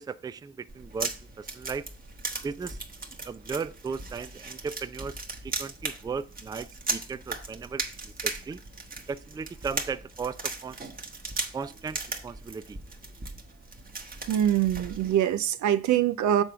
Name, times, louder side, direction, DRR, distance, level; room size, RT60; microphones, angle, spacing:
voice 1, 0.0-1.9 2.4-2.8 3.2-8.6 9.1-10.8 11.5-12.8, right 5 dB, 15° right, 0.3 m, -36 dB
sound 1, 0.7-15.2, right 3 dB, 30° right, 1.3 m, -37 dB
voice 2, 14.3-16.4, right 11 dB, 75° right, 0.6 m, -24 dB
7.2 x 3.7 x 5.7 m
cardioid pair, 80°, 30 cm